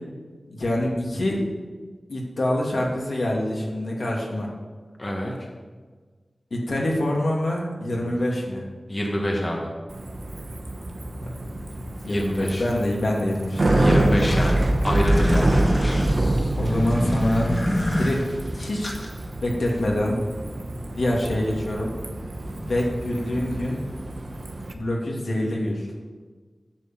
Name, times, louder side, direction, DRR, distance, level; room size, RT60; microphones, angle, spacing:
voice 1, 0.5-1.4 2.1-4.5 6.5-8.6 11.4-11.5 12.0-14.2 16.6-17.6 18.0-18.2 18.5-19.0 19.4-20.2 20.9-21.9 22.6-23.8 24.7-25.9, left 1 dB, 75° left, -3 dB, 2.8 m, -25 dB
voice 2, 5.0-5.5 8.9-9.7 12.1-12.6 13.8-16.0, equal, 30° left, -1 dB, 1.8 m, -27 dB
Bicycle, 9.9-24.7, right 1 dB, 50° right, 1.1 m, -26 dB
sound 1, 13.4-19.1, left 1 dB, 45° left, 2.1 m, -27 dB
10.5 x 7.0 x 7.7 m, 1.4 s
wide cardioid pair, 70°, 0 cm